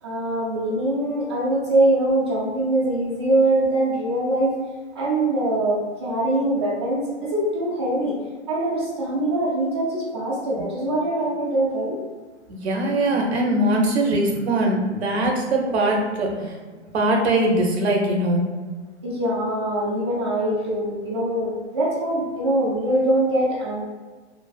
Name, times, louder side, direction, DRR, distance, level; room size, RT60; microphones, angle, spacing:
voice 1, 0.0-4.5 4.9-8.2 8.5-12.0 19.0-23.8, right 1 dB, 25° right, -6 dB, 0.4 m, -23 dB
voice 2, 12.5-16.5 16.9-18.4, right 1 dB, 65° right, 1 dB, 0.6 m, -21 dB
2.4 x 2.2 x 2.3 m, 1.4 s
hypercardioid pair, 155°, 35 cm